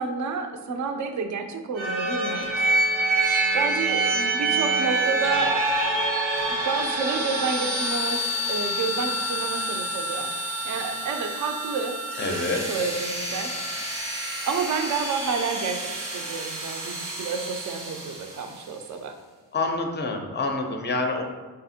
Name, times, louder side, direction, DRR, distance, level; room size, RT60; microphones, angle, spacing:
voice 1, 0.0-2.7 3.5-5.7 6.5-8.2 8.5-11.9 12.3-13.8 14.4-19.1, right 5 dB, 40° right, 6 dB, 0.5 m, -30 dB
sound 1, 1.8-18.5, right 1 dB, 75° right, 0.8 m, -27 dB
voice 2, 12.2-12.6 19.5-21.2, left 3 dB, 25° left, 3 dB, 0.5 m, -27 dB
3.4 x 2.0 x 2.7 m, 1.3 s
hypercardioid pair, 40°, 47 cm